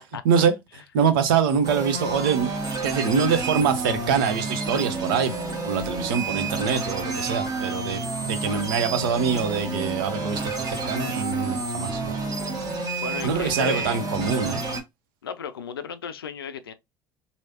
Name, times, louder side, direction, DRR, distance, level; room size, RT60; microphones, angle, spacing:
voice 1, 0.9-2.5 2.8-5.3 5.6-12.2 13.2-14.6, right 6 dB, 70° right, 0.6 m, -24 dB
sound 1, 1.6-14.8, right 3 dB, 35° right, 1.3 m, -30 dB
voice 2, 13.0-14.0 15.2-16.7, left 7 dB, 85° left, 0.4 m, -34 dB
3.1 x 2.7 x 2.7 m
hypercardioid pair, 65°, 12 cm